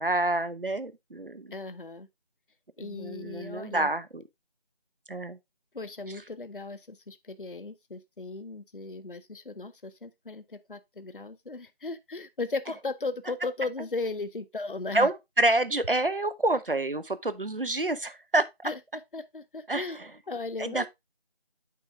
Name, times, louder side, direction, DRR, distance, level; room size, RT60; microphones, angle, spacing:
voice 1, 0.0-1.5 2.8-4.2 5.1-5.4 14.9-18.7 19.7-20.1 20.6-20.9, right 2 dB, 60° right, 0.7 m, -28 dB
voice 2, 1.5-2.1 2.8-3.9 5.7-15.1 18.6-18.8 19.1-20.0 20.3-20.9, left 3 dB, 55° left, 0.6 m, -36 dB
8.4 x 4.6 x 3.3 m
figure-of-eight pair, 175°, 31 cm